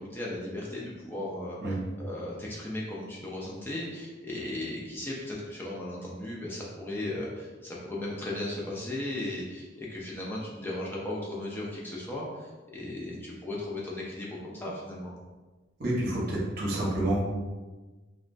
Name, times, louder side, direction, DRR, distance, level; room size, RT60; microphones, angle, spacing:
voice 1, 0.0-1.6 2.0-15.1, left 1 dB, 10° left, -4 dB, 0.4 m, -36 dB
voice 2, 15.8-17.2, right 1 dB, 55° right, -4 dB, 0.7 m, -28 dB
2.9 x 2.1 x 2.5 m, 1.3 s
head